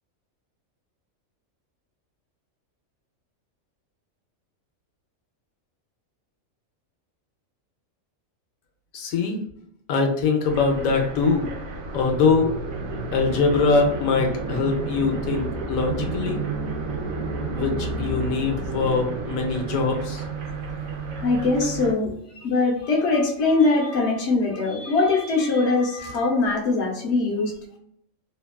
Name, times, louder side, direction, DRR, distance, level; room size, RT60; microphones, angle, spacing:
voice 1, 8.9-9.4 9.9-11.5 11.9-12.5 13.1-16.4 17.5-20.2, left 4 dB, 85° left, 2 dB, 1.1 m, -23 dB
sound 1, 10.4-21.9, right 3 dB, 80° right, 1.0 m, -31 dB
voice 2, 21.2-27.5, left 3 dB, 55° left, 0 dB, 1.0 m, -22 dB
2.9 x 2.2 x 2.2 m, 0.72 s
omnidirectional pair, 1.4 m